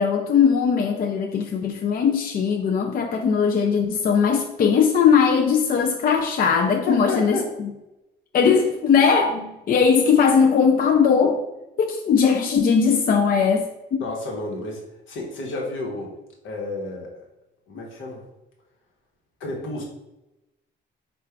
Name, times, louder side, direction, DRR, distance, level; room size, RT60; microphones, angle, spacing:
voice 1, 0.0-7.4 8.3-11.4 11.8-14.1, left 6 dB, 45° left, 3 dB, 0.4 m, -19 dB
voice 2, 6.9-7.6 14.0-16.1 16.4-17.3 17.7-18.2 19.4-19.8, left 2 dB, 75° left, 0 dB, 1.1 m, -31 dB
3.6 x 2.4 x 4.4 m, 0.94 s
cardioid pair, 90°, 20 cm